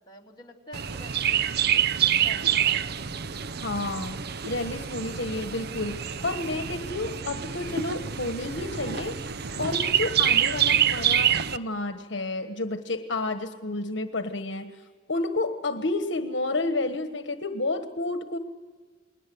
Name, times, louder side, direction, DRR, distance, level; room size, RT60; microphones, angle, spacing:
voice 1, 0.1-1.9 2.2-2.9, left 2 dB, 25° left, -1 dB, 3.0 m, -47 dB
Chirp tweet, 0.7-11.6, right 9 dB, 60° right, 0.7 m, -26 dB
voice 2, 3.6-4.2 4.5-9.2 9.6-14.7 15.1-18.4, left 2 dB, 70° left, 8 dB, 1.4 m, -30 dB
29.0 x 21.0 x 7.9 m, 1.5 s
head